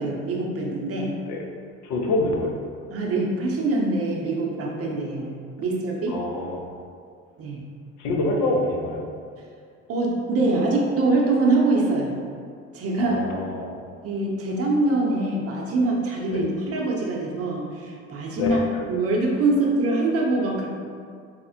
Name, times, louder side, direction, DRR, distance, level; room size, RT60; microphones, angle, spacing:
voice 1, 0.0-1.2 2.9-6.2 7.4-7.6 9.9-12.2 12.7-13.3 14.0-18.6 18.9-20.7, right 2 dB, 45° right, -2 dB, 0.7 m, -24 dB
voice 2, 1.8-2.6 6.1-6.6 8.0-9.1 13.0-13.7 16.3-16.4 18.4-18.6, left 2 dB, 70° left, 1 dB, 0.6 m, -26 dB
4.1 x 2.0 x 2.7 m, 2.2 s
hypercardioid pair, 65°, 32 cm